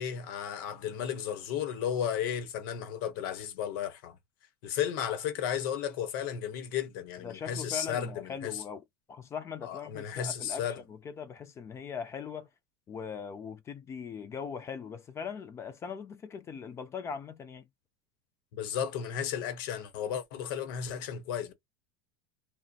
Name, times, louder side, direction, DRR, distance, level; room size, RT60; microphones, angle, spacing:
voice 1, 0.0-4.2 4.6-8.6 9.6-10.8 18.5-21.5, left 9 dB, 70° left, 0.9 m, -34 dB
voice 2, 7.2-8.8 9.1-12.5 12.9-17.7, left 6 dB, 25° left, 0.4 m, -40 dB
2.6 x 2.1 x 2.3 m
supercardioid pair, 130°, 12 cm